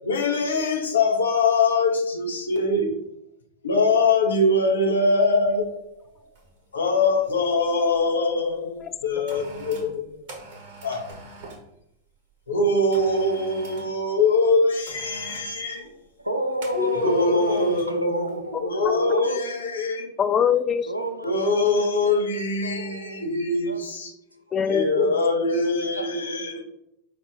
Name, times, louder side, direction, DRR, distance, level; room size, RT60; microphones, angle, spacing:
voice 1, 0.0-2.9 3.6-5.8 6.7-10.1 10.8-11.0 12.5-15.9 17.0-18.2 18.6-20.1 21.2-24.1 24.7-26.6, left 3 dB, 70° left, 2 dB, 0.8 m, -23 dB
sound 1, 5.5-5.7 6.4-6.6 6.9-8.1 8.8-11.7 12.9-14.0 14.9-15.6 16.6-18.0 18.3-18.5, right 2 dB, 50° right, 1.0 m, -44 dB
voice 2, 16.2-20.1 20.9-22.3 22.6-23.3 23.7-24.0 24.3-24.9 25.7-26.6, right 1 dB, 85° right, 6 dB, 0.5 m, -30 dB
voice 3, 16.8-17.1 18.8-18.9 20.2-20.9 24.5-25.1, left 8 dB, 25° left, 10 dB, 0.3 m, -23 dB
4.9 x 2.5 x 3.5 m, 0.80 s
figure-of-eight pair, 90°, 0 cm